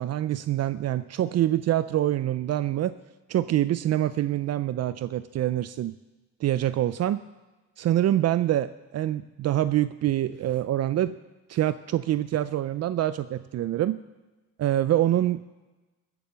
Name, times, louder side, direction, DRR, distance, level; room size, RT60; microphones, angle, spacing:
voice 1, 0.0-2.9 3.3-5.9 6.4-7.2 7.8-11.1 11.5-14.0 14.6-15.5, right 13 dB, 55° right, 14 dB, 0.5 m, -25 dB
15.5 x 7.0 x 6.8 m, 1.2 s
cardioid pair, 90°, 30 cm